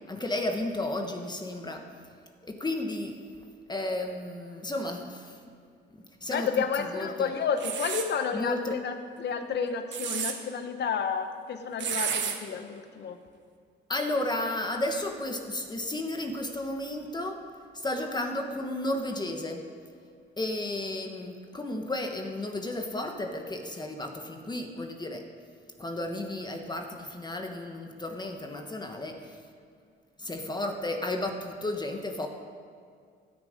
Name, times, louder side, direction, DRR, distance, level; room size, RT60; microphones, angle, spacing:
voice 1, 0.1-1.9 2.4-3.2 3.7-5.4 5.9-7.3 8.3-8.8 13.9-17.4 17.7-19.7 20.4-25.3 25.8-29.4 30.2-32.3, left 1 dB, 20° left, 4 dB, 1.3 m, -33 dB
voice 2, 6.3-13.2, left 6 dB, 60° left, 8 dB, 1.2 m, -31 dB
sound 1, 7.6-8.1 9.7-10.3 11.8-12.4, right 8 dB, 65° right, 1.4 m, -31 dB
16.0 x 9.4 x 5.1 m, 2.2 s
cardioid pair, 90°, 20 cm